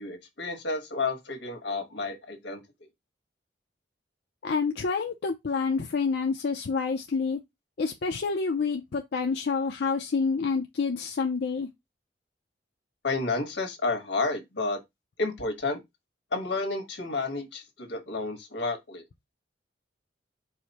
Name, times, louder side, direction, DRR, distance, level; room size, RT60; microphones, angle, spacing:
voice 1, 0.0-2.6 13.0-14.8 15.2-15.8 16.3-19.0, left 3 dB, 90° left, 1.4 m, -31 dB
voice 2, 4.4-7.4 7.8-11.7, left 5 dB, 65° left, 0.5 m, -28 dB
4.8 x 2.0 x 4.1 m
head